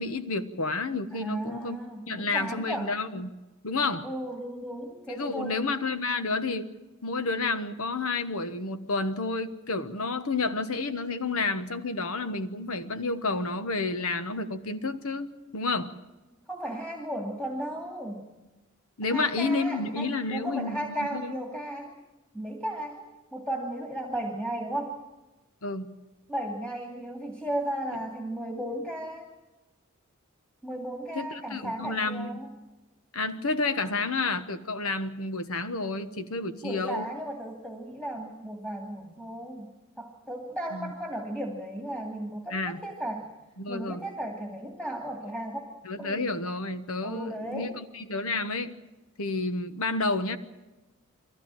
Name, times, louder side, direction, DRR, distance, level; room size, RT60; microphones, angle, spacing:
voice 1, 0.0-1.8 2.1-3.3 3.6-4.1 5.1-6.7 7.0-15.9 19.0-21.3 25.6-25.9 31.1-32.5 33.1-37.1 40.7-40.9 42.5-42.8 43.6-44.0 45.8-48.8 49.2-50.4, left 3 dB, 80° left, 11 dB, 1.3 m, -30 dB
voice 2, 1.1-3.0 4.0-5.6 16.5-18.3 19.0-21.9 22.3-23.0 23.3-25.0 26.3-29.3 30.6-32.5 36.6-43.3 43.7-45.6 46.0-46.3 47.0-47.8, right 1 dB, 5° left, 1 dB, 2.5 m, -35 dB
23.0 x 15.5 x 9.0 m, 1.1 s
head